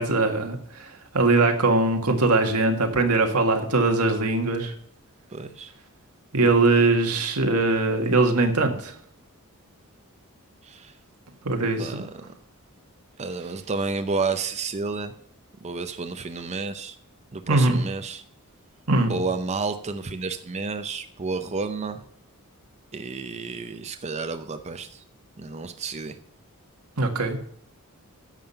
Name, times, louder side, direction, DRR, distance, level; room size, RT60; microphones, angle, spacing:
voice 1, 0.0-4.7 6.3-8.9 11.4-12.0 17.5-17.8 18.9-19.2 27.0-27.4, right 3 dB, 85° right, 4 dB, 1.8 m, -21 dB
voice 2, 5.3-5.7 10.6-10.9 11.8-12.1 13.2-15.1 15.6-17.0 17.3-18.2 19.1-22.0 22.9-25.0 25.4-26.2, right 4 dB, 30° right, 8 dB, 0.6 m, -31 dB
10.5 x 7.4 x 5.6 m, 0.66 s
head